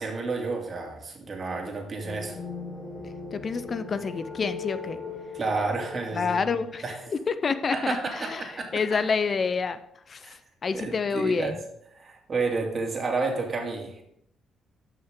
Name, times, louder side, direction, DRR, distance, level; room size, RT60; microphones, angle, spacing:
voice 1, 0.0-2.4 5.3-6.4 6.8-6.9 7.7-9.0 10.2-10.3 10.7-11.6 12.0-14.0, right 3 dB, 40° right, 1 dB, 2.4 m, -30 dB
sound 1, 2.0-7.9, left 4 dB, 65° left, 3.2 m, -39 dB
voice 2, 3.3-5.0 6.1-6.8 7.3-9.8 10.1-10.3 10.6-11.6, left 5 dB, 45° left, 12 dB, 0.5 m, -28 dB
13.0 x 5.7 x 3.7 m, 0.74 s
cardioid pair, 90°, 0 cm